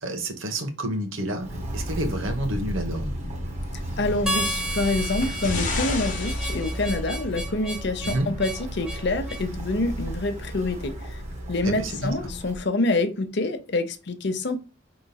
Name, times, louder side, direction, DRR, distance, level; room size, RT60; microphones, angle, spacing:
voice 1, 0.0-3.1 8.0-8.3 11.6-12.1, right 1 dB, 75° right, 1.2 m, -29 dB
Walk footsteps, 1.4-12.6, equal, 35° right, 1.2 m, -33 dB
voice 2, 4.0-10.9 11.5-14.6, left 2 dB, 55° left, 0.7 m, -26 dB
sound 1, 4.0-7.4 8.3-8.4, left 3 dB, 40° left, 1.1 m, -33 dB
Harmonica, 4.3-9.5, right 1 dB, 5° right, 0.6 m, -33 dB
5.1 x 3.8 x 2.3 m
head